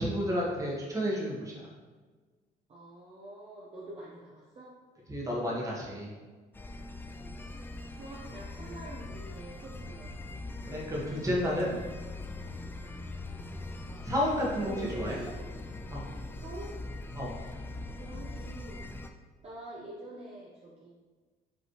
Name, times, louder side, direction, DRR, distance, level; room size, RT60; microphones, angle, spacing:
voice 1, 0.0-1.7 5.1-6.2 10.7-11.7 14.0-15.2 15.9-16.1 17.1-17.4, equal, 20° right, -4 dB, 1.3 m, -31 dB
voice 2, 2.7-4.7 7.2-7.5 7.9-10.1 11.5-12.0 12.7-13.0 14.6-15.4 16.3-16.8 17.9-18.9 19.4-20.9, right 1 dB, 35° right, -5 dB, 0.8 m, -46 dB
sound 1, 6.5-19.1, left 2 dB, 10° left, 0.3 m, -42 dB
5.2 x 3.2 x 3.1 m, 1.4 s
cardioid pair, 110°, 17 cm